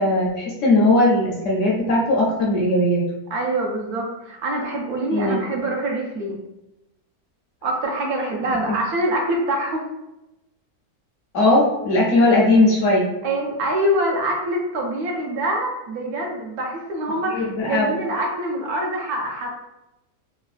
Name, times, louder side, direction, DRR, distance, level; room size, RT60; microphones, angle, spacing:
voice 1, 0.0-3.0 5.1-5.6 8.7-8.8 11.3-13.1 17.3-17.9, left 2 dB, 65° left, -3 dB, 0.9 m, -18 dB
voice 2, 3.3-6.4 7.6-9.8 13.2-19.5, right 1 dB, 80° right, 0 dB, 1.1 m, -25 dB
3.2 x 2.2 x 2.4 m, 0.95 s
omnidirectional pair, 1.6 m